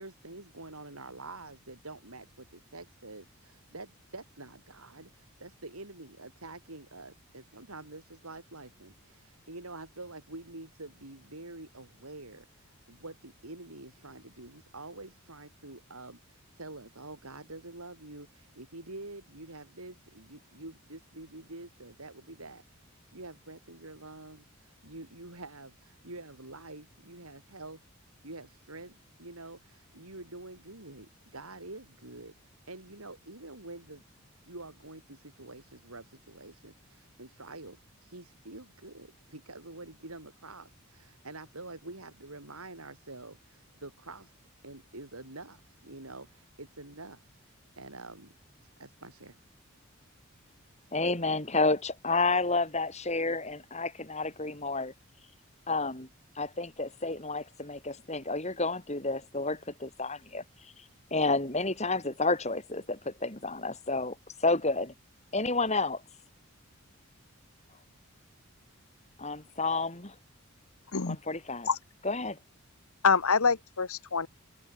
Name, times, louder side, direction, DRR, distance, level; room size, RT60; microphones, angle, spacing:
voice 1, 0.0-27.8 28.2-34.0 34.5-44.4 44.6-48.3 48.8-49.4, right 2 dB, 90° right, 7.7 m, -47 dB
voice 2, 50.9-54.9 55.7-56.1 56.4-60.4 61.1-64.1 64.4-64.9 65.3-66.0 69.2-70.1 71.0-71.7 72.0-72.4, left 3 dB, 30° left, 4.6 m, -30 dB
voice 3, 73.0-74.3, left 5 dB, 80° left, 1.3 m, -25 dB
head